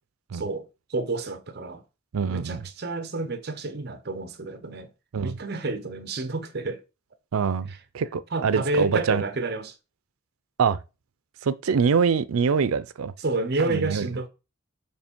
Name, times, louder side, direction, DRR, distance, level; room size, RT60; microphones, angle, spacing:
voice 1, 0.3-1.8 2.2-4.9 5.2-6.8 7.7-7.8 8.3-9.7 13.2-14.3, right 2 dB, 50° right, 0.8 m, -30 dB
voice 2, 2.1-2.6 5.1-5.3 7.3-9.2 10.6-10.8 11.4-13.1 13.7-14.1, right 6 dB, 85° right, 0.5 m, -24 dB
6.5 x 3.2 x 4.5 m
head